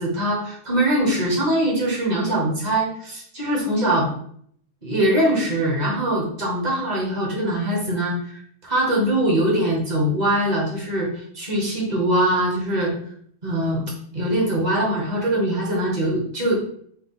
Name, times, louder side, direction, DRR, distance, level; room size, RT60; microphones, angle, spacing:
voice 1, 0.0-4.1 4.8-12.9 13.4-16.5, right 1 dB, 25° right, -3 dB, 1.0 m, -22 dB
4.5 x 2.4 x 4.1 m, 0.63 s
omnidirectional pair, 2.3 m